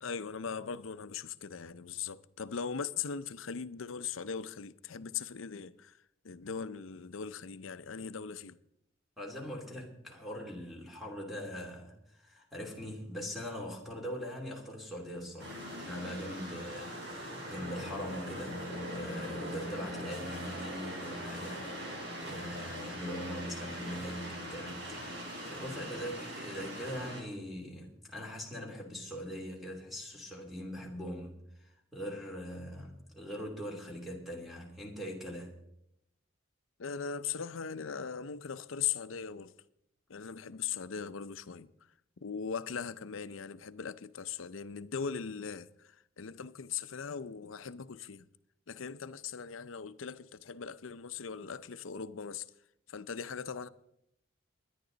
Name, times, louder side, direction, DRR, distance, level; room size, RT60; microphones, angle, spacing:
voice 1, 0.0-6.0 6.2-8.6 36.8-39.5 40.1-41.7 42.2-48.3 48.7-52.4 52.9-53.7, left 6 dB, 80° left, 0.6 m, -39 dB
voice 2, 9.2-35.6, equal, ahead, 2.8 m, -42 dB
sound 1, 15.4-27.2, equal, 60° right, 4.1 m, -41 dB
23.0 x 10.5 x 4.0 m
head